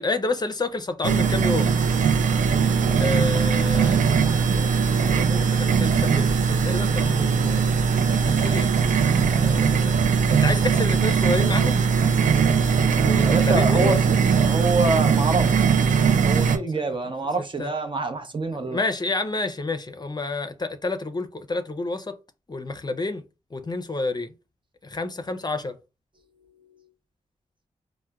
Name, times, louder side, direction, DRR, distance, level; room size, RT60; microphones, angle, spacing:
voice 1, 0.0-1.8 3.0-4.1 4.5-7.6 8.2-8.7 9.3-10.0 10.3-11.8 13.0-14.0 17.6-17.7 18.5-22.2 22.5-23.2 23.5-24.3 24.8-25.8, left 2 dB, 30° left, 0.5 m, -29 dB
sound 1, 1.0-16.6, right 6 dB, 80° right, 0.4 m, -20 dB
voice 2, 13.2-15.5 16.2-18.8, right 3 dB, 40° right, 0.7 m, -26 dB
4.3 x 2.1 x 2.3 m
cardioid pair, 45°, 13 cm